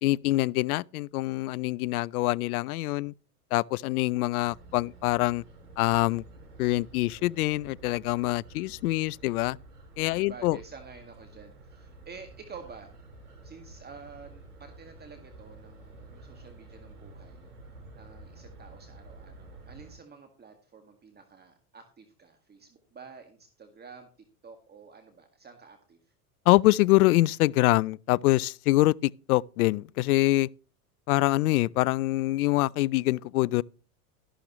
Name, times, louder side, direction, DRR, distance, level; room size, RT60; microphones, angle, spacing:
voice 1, 0.0-3.1 3.5-5.4 5.8-6.2 6.6-9.6 10.0-10.6 26.5-30.5 31.1-33.6, left 18 dB, 75° left, 0.5 m, -25 dB
sound 1, 4.4-20.0, right 2 dB, 85° right, 5.9 m, -50 dB
voice 2, 10.2-12.9 13.4-17.5 17.9-24.1 24.4-26.1, right 5 dB, 20° right, 1.8 m, -49 dB
13.5 x 11.5 x 3.0 m
hypercardioid pair, 105°, 45 cm